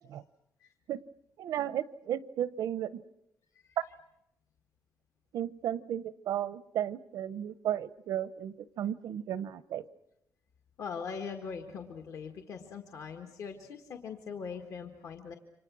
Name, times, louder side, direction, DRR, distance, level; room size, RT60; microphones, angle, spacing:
voice 1, 1.4-3.0 5.3-9.8, right 10 dB, 80° right, 16 dB, 0.8 m, -34 dB
voice 2, 10.8-15.3, left 6 dB, 60° left, 4 dB, 1.6 m, -41 dB
28.5 x 25.5 x 6.2 m, 0.81 s
cardioid pair, 175°, 6 cm